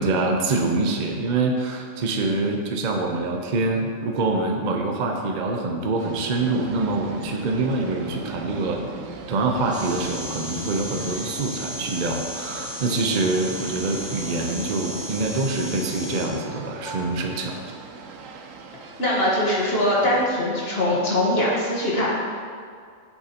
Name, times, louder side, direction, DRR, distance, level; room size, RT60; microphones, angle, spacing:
voice 1, 0.0-8.9 9.3-17.6, right 3 dB, 40° right, 2 dB, 0.7 m, -25 dB
sound 1, 6.0-20.3, right 5 dB, 70° right, 1.0 m, -40 dB
sound 2, 9.7-16.3, left 1 dB, 5° right, 1.7 m, -35 dB
sound 3, 15.8-18.8, left 1 dB, 80° left, 2.6 m, -41 dB
voice 2, 19.0-22.1, left 1 dB, 45° left, -5 dB, 1.6 m, -22 dB
9.1 x 7.0 x 2.9 m, 2.1 s
omnidirectional pair, 1.5 m